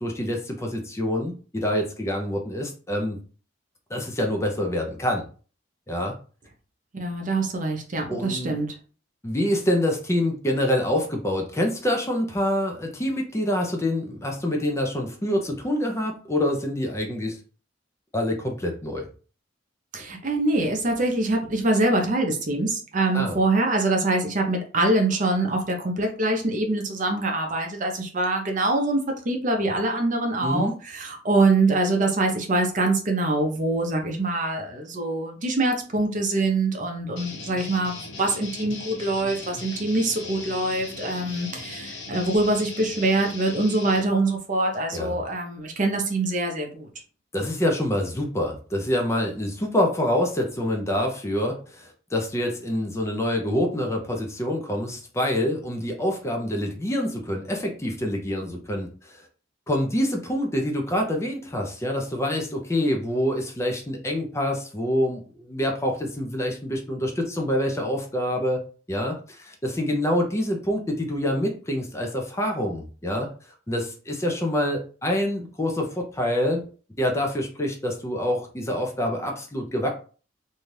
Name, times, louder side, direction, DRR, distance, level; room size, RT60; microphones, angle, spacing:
voice 1, 0.0-3.2 3.9-5.2 5.9-6.1 8.1-8.5 9.2-17.4 18.1-19.1 23.1-23.4 30.4-30.8 44.9-45.2 47.3-59.2 59.7-68.6 68.9-73.3 73.7-76.6 77.0-79.9, left 1 dB, 15° left, 2 dB, 0.4 m, -26 dB
voice 2, 6.9-8.7 19.9-46.9, right 2 dB, 45° right, 3 dB, 0.6 m, -24 dB
sound 1, 37.2-44.0, left 3 dB, 90° left, 0.8 m, -38 dB
2.6 x 2.3 x 3.2 m, 0.39 s
head